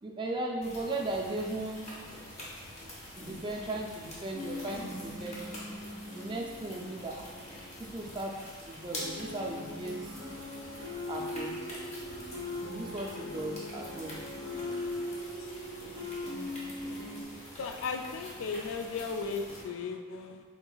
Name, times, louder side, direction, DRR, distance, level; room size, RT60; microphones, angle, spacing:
voice 1, 0.0-1.9 3.2-5.6 6.1-7.3 7.8-8.4 8.7-10.2 11.1-11.6 12.6-14.2, right 2 dB, 20° right, -1 dB, 0.3 m, -37 dB
sound 1, 0.6-19.6, left 1 dB, 30° left, 0.8 m, -46 dB
sound 2, 4.3-8.3 8.9-17.2, left 1 dB, 50° left, 1.5 m, -41 dB
sound 3, 9.9-15.0, equal, ahead, 0.8 m, -52 dB
voice 2, 17.6-20.4, left 4 dB, 65° left, 5 dB, 0.3 m, -36 dB
4.7 x 3.5 x 2.3 m, 1.5 s
head